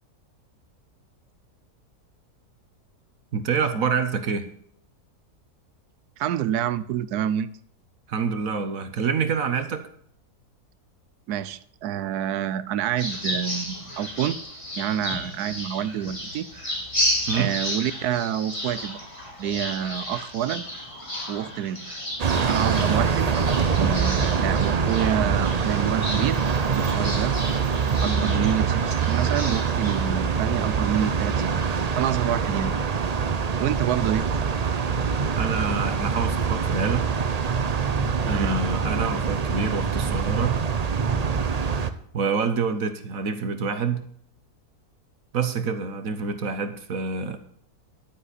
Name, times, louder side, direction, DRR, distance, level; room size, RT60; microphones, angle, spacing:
voice 1, 3.3-4.5 8.1-9.9 17.3-17.6 28.3-28.6 35.4-37.1 38.3-40.6 42.1-44.1 45.3-47.4, right 5 dB, 60° right, 9 dB, 1.4 m, -27 dB
voice 2, 6.2-7.5 11.3-14.4 14.8-16.5 17.3-19.0 19.4-20.7 21.3-21.8 22.4-23.3 23.7-26.4 26.7-27.4 28.0-31.6 32.0-32.7 33.6-34.3 38.3-38.5, right 10 dB, 90° right, 16 dB, 1.2 m, -27 dB
sound 1, 13.0-30.2, left 1 dB, 20° left, 3.0 m, -33 dB
sound 2, 22.2-41.9, right 6 dB, 45° right, 0.5 m, -24 dB
11.0 x 9.9 x 4.1 m, 0.65 s
omnidirectional pair, 1.7 m